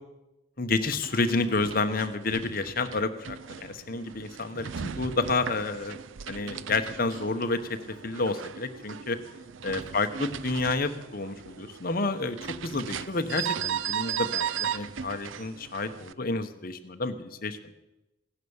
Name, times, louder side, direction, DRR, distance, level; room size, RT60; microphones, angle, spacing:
voice 1, 0.6-6.0 6.3-7.8 8.0-9.2 9.6-17.6, left 3 dB, 50° left, 9 dB, 1.1 m, -30 dB
sound 1, 0.8-16.1, right 8 dB, 80° right, 0.5 m, -37 dB
16.5 x 10.0 x 7.2 m, 0.97 s
head